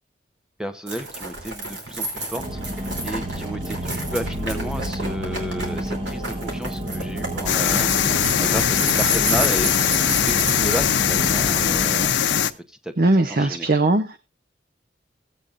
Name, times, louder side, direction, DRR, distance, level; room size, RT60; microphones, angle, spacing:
voice 1, 0.6-12.2 12.7-12.9 13.3-13.7, equal, 5° right, 0.8 m, -32 dB
sound 1, 0.9-11.4, right 1 dB, 90° right, 3.1 m, -31 dB
sound 2, 2.4-12.1, right 1 dB, 30° right, 1.4 m, -31 dB
sound 3, 7.5-12.5, left 9 dB, 85° left, 0.7 m, -21 dB
voice 2, 13.0-14.2, right 2 dB, 55° right, 0.7 m, -20 dB
16.5 x 8.4 x 2.5 m
head